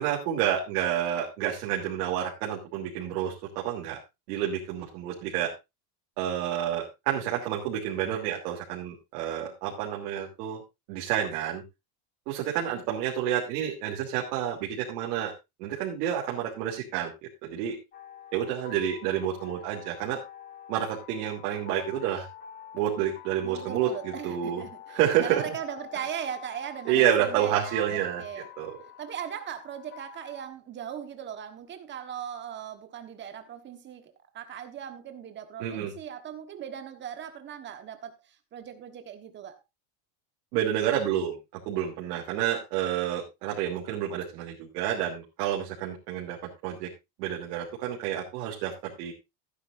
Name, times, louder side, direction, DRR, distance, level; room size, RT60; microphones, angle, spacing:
voice 1, 0.0-4.0 4.3-5.5 6.2-10.6 10.9-11.6 12.3-15.3 15.6-17.1 17.4-17.8 18.3-20.2 20.7-22.3 22.7-24.6 24.9-25.4 26.8-28.2 28.6-28.7 35.6-35.9 40.5-41.4 41.6-46.4 46.6-46.9 47.2-49.1, right 10 dB, 85° right, 3.1 m, -29 dB
sound 1, 17.9-30.4, left 10 dB, 20° left, 1.3 m, -47 dB
voice 2, 23.4-28.5 29.0-39.6, right 9 dB, 25° right, 1.4 m, -39 dB
15.0 x 9.9 x 2.6 m
cardioid pair, 180°, 46 cm